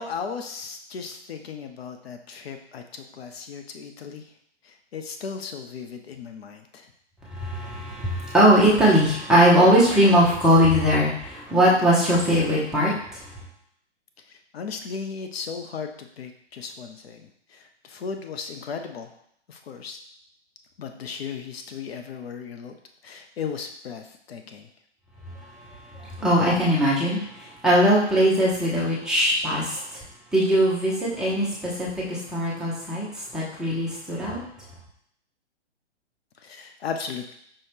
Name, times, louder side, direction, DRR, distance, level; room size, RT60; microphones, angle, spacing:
voice 1, 0.0-4.3 4.6-6.9 14.3-19.1 19.5-20.0 20.8-22.8 23.0-24.7 36.4-37.3, left 6 dB, 60° left, 6 dB, 0.5 m, -36 dB
voice 2, 7.3-13.4 25.9-30.0 30.3-34.4, equal, ahead, -7 dB, 0.7 m, -20 dB
5.3 x 2.7 x 3.3 m, 0.71 s
figure-of-eight pair, 120°, 35 cm